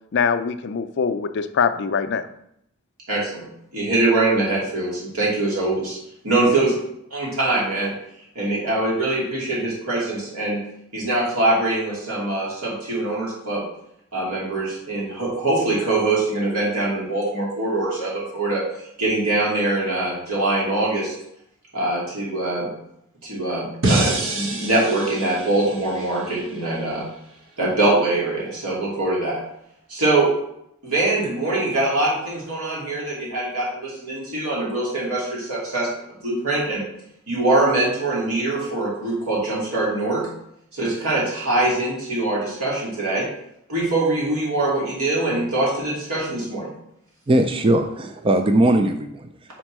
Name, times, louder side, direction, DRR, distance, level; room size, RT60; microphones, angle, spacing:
voice 1, 0.1-2.3 6.5-6.6, left 6 dB, 55° left, 10 dB, 0.4 m, -23 dB
voice 2, 3.1-3.5 3.7-6.0 6.2-6.8 7.1-7.9 8.3-10.6 10.9-13.6 14.1-18.6 19.0-21.1 21.7-22.7 23.2-27.0 27.6-29.4 29.9-30.3 30.8-35.9 36.2-36.8 37.3-40.3 40.7-43.2 43.7-46.7, right 2 dB, 85° right, -5 dB, 2.8 m, -23 dB
sound 1, 23.8-27.0, right 2 dB, 60° right, 1.2 m, -27 dB
voice 3, 47.3-49.3, right 1 dB, 25° right, 7 dB, 0.4 m, -19 dB
5.3 x 4.4 x 6.0 m, 0.75 s
head